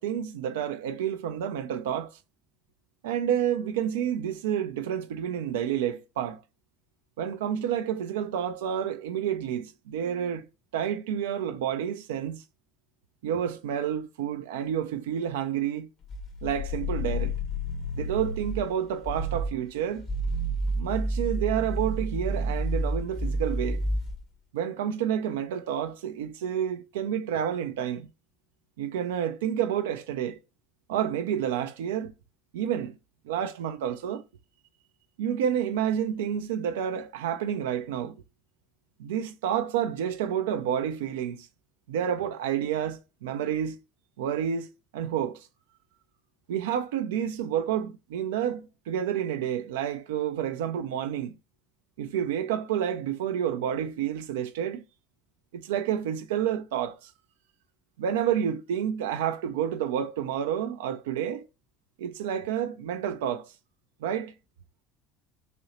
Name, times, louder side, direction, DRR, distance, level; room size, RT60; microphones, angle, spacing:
voice 1, 0.0-2.2 3.0-6.4 7.2-10.4 10.7-12.4 13.2-15.9 16.4-17.3 17.9-20.0 20.8-23.8 24.5-28.1 28.8-30.4 30.9-32.1 32.5-33.0 33.3-34.2 35.2-38.2 39.0-41.5 41.9-43.8 44.2-45.5 46.5-51.3 52.0-54.8 55.5-57.1 58.0-61.5 62.0-63.5 64.0-64.3, right 9 dB, 70° right, 0.3 m, -29 dB
sound 1, 16.0-18.7 19.0-19.6 20.0-24.2, equal, 50° left, 1.3 m, -30 dB
4.1 x 2.7 x 2.9 m
figure-of-eight pair, 65°, 0 cm